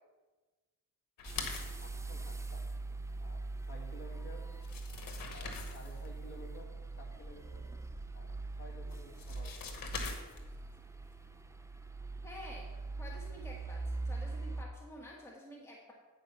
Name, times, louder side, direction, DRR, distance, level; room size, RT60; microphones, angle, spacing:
sound 1, 1.2-1.9 4.1-4.2 4.5-6.1 8.9-10.6, left 5 dB, 80° left, 1.3 m, -43 dB
voice 1, 1.2-2.6 3.2-4.5 5.3-7.7 8.1-9.8, left 1 dB, 40° left, -1 dB, 2.2 m, -54 dB
sound 2, 1.2-14.6, right 3 dB, 10° right, 0.5 m, -42 dB
voice 2, 12.2-12.7 13.0-15.9, left 1 dB, 10° left, -2 dB, 1.3 m, -50 dB
8.9 x 5.0 x 5.8 m, 1.2 s
cardioid pair, 90°, 34 cm